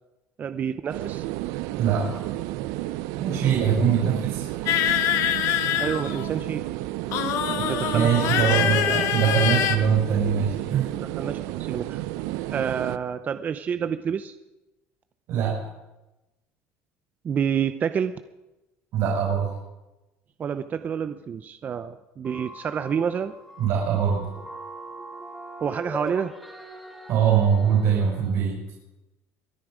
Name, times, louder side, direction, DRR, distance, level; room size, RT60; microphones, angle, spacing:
voice 1, 0.4-1.3 4.0-4.1 5.8-6.6 7.6-8.6 11.2-12.0 12.5-14.4 17.2-18.1 20.4-23.3 25.6-26.3, right 7 dB, 30° right, 11 dB, 0.6 m, -28 dB
sound 1, 0.9-13.0, right 16 dB, 80° right, 0.5 m, -31 dB
voice 2, 1.8-2.2 3.2-4.5 7.5-7.7 7.9-10.9 15.3-15.6 18.9-19.5 23.6-24.3 27.1-28.6, right 7 dB, 60° right, -3 dB, 5.4 m, -22 dB
sound 2, 4.7-6.5 7.1-9.8, left 10 dB, 65° left, 1.3 m, -24 dB
sound 3, 22.2-28.2, right 1 dB, ahead, 2.9 m, -41 dB
22.5 x 9.9 x 5.0 m, 1.0 s
cardioid pair, 140°, 6 cm